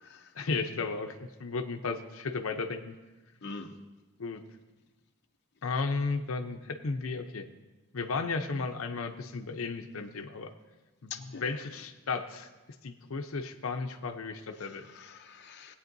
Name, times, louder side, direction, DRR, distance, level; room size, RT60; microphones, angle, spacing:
voice 1, 0.3-3.0 4.2-4.4 5.6-7.5 7.9-10.5 11.0-12.5 12.8-14.8, left 4 dB, 90° left, 6 dB, 0.7 m, -34 dB
voice 2, 3.4-3.7 11.1-11.5 14.6-15.7, left 4 dB, 55° left, 4 dB, 0.7 m, -44 dB
20.0 x 8.6 x 2.6 m, 1.2 s
head